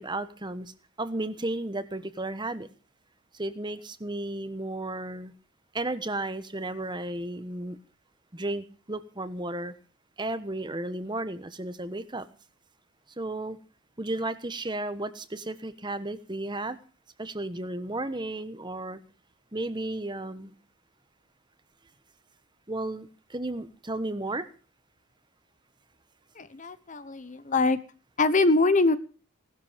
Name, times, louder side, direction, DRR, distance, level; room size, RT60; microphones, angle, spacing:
voice 1, 0.0-2.7 3.3-5.3 5.7-7.8 8.3-9.7 10.2-12.3 13.2-13.6 14.0-16.8 17.2-19.0 19.5-20.5 22.7-24.5, right 2 dB, 20° right, 12 dB, 1.2 m, -33 dB
voice 2, 26.4-27.8 28.2-29.0, left 3 dB, 35° left, 14 dB, 1.0 m, -23 dB
18.5 x 13.0 x 5.1 m, 0.37 s
head